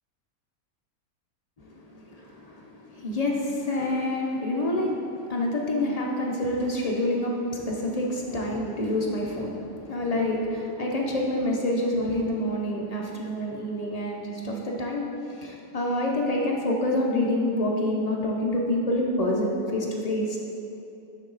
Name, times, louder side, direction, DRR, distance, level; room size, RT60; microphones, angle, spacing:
voice 1, 1.6-20.4, left 1 dB, 45° left, -1 dB, 0.5 m, -27 dB
6.7 x 6.4 x 3.9 m, 2.8 s
omnidirectional pair, 1.5 m